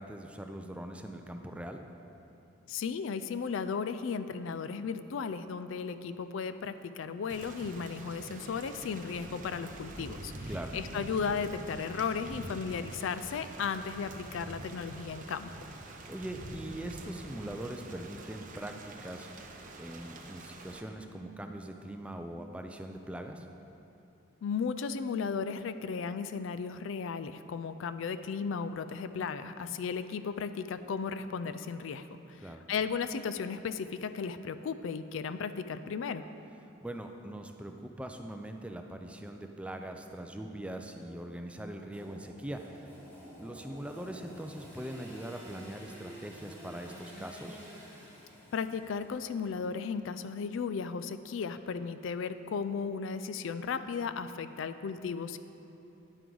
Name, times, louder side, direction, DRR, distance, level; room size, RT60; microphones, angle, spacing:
voice 1, 0.0-1.8 10.5-10.7 15.8-23.5 32.4-32.6 36.8-43.0 43.4-47.6, right 1 dB, 5° right, 4 dB, 0.4 m, -42 dB
voice 2, 2.7-15.7 24.4-36.3 48.5-55.4, left 5 dB, 65° left, 12 dB, 0.3 m, -35 dB
Thunder / Rain, 7.3-20.8, right 2 dB, 40° right, 0.7 m, -46 dB
Engine / Sawing, 41.9-50.1, equal, 10° left, 2.5 m, -50 dB
9.8 x 9.3 x 3.9 m, 2.9 s
head